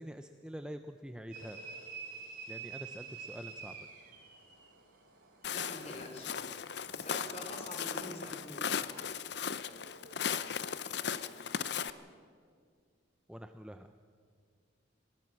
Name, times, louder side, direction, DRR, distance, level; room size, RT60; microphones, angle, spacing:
voice 1, 0.0-1.6 2.5-3.9 13.3-13.9, equal, 5° right, 8 dB, 0.5 m, -46 dB
sound 1, 1.3-4.6, right 5 dB, 45° right, 3.8 m, -46 dB
sound 2, 1.3-10.2, right 2 dB, 90° right, 4.2 m, -62 dB
Walk footsteps, 5.4-11.9, left 7 dB, 60° left, 0.7 m, -37 dB
voice 2, 5.5-6.3 6.9-8.7, left 1 dB, 35° left, 2 dB, 4.2 m, -45 dB
21.5 x 18.5 x 7.6 m, 2.1 s
head